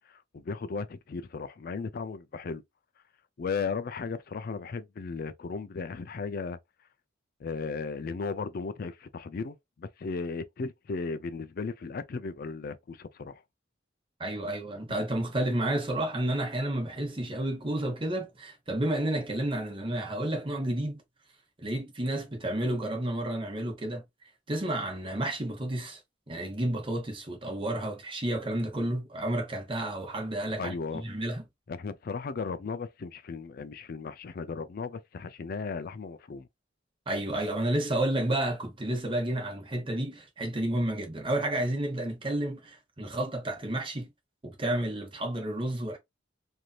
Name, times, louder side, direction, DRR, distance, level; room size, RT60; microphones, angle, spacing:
voice 1, 0.1-2.6 3.4-6.6 7.4-13.4 30.6-31.0 31.7-36.5, left 4 dB, 50° left, 0.4 m, -36 dB
voice 2, 14.2-21.0 21.6-24.0 24.5-26.0 26.3-31.4 37.1-44.1 44.4-46.0, right 1 dB, 30° right, 1.0 m, -31 dB
3.1 x 2.7 x 2.4 m
head